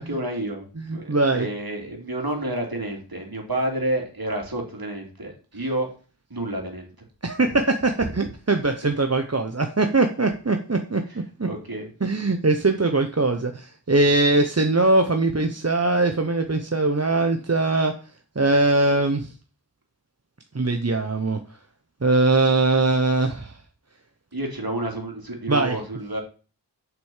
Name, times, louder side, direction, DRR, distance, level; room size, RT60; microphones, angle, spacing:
voice 1, 0.0-0.6 0.9-5.9 6.3-6.9 11.5-11.9 24.3-26.2, right 1 dB, 55° right, 1 dB, 3.4 m, -29 dB
voice 2, 0.8-1.5 7.2-11.0 11.4-11.5 12.0-17.9 18.3-19.3 20.5-21.4 22.0-23.6 25.5-25.8, right 2 dB, 35° right, 5 dB, 1.0 m, -21 dB
7.1 x 6.1 x 7.4 m, 0.37 s
wide cardioid pair, 45°, 43 cm